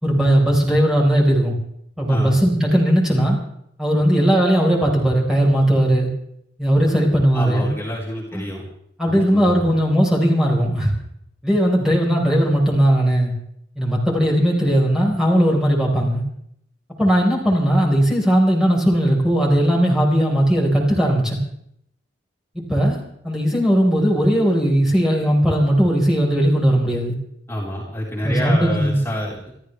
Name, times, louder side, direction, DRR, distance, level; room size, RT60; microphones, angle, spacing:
voice 1, 0.0-1.5 2.0-3.4 3.8-6.1 6.6-7.7 8.3-8.4 9.0-10.9 11.4-13.3 13.8-16.2 17.0-21.4 22.5-27.1 28.2-29.0, equal, 5° right, -3 dB, 4.4 m, -18 dB
voice 2, 7.3-8.6 9.0-9.5 27.5-29.5, equal, 15° left, -4 dB, 4.2 m, -27 dB
29.0 x 13.0 x 3.4 m, 0.72 s
head